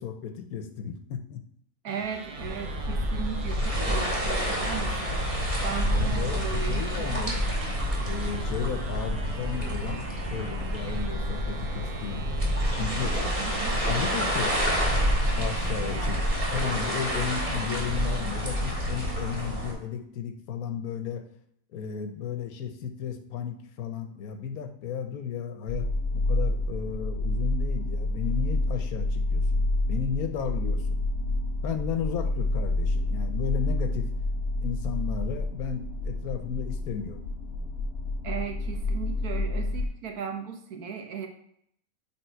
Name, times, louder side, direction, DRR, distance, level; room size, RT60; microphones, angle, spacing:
voice 1, 0.0-1.4 5.9-7.4 8.0-12.3 12.8-13.2 13.9-14.9 15.4-16.2 16.5-21.2 21.7-25.9 26.1-31.0 31.6-34.1 34.6-37.2, left 7 dB, 80° left, 6 dB, 1.2 m, -34 dB
voice 2, 1.8-5.3 5.6-7.4 13.2-13.8 15.9-16.2 17.1-17.2 38.2-41.3, right 7 dB, 90° right, 3 dB, 1.4 m, -37 dB
sound 1, 1.9-18.3, right 5 dB, 65° right, 1.0 m, -43 dB
sound 2, 2.4-19.7, equal, 35° right, 1.8 m, -28 dB
sound 3, 25.7-39.9, left 2 dB, 50° left, 1.0 m, -29 dB
7.4 x 3.3 x 4.5 m, 0.69 s
omnidirectional pair, 1.5 m